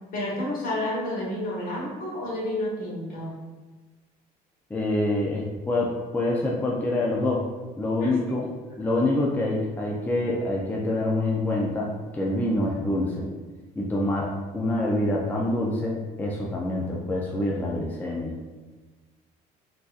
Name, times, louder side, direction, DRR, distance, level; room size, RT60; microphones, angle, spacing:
voice 1, 0.1-3.3 8.0-8.5, left 1 dB, 55° left, -4 dB, 1.2 m, -30 dB
voice 2, 4.7-7.5 7.8-8.5 8.8-13.3 13.8-18.4, left 1 dB, 10° left, -3 dB, 0.4 m, -26 dB
3.8 x 2.6 x 2.4 m, 1.3 s
cardioid pair, 110°, 17 cm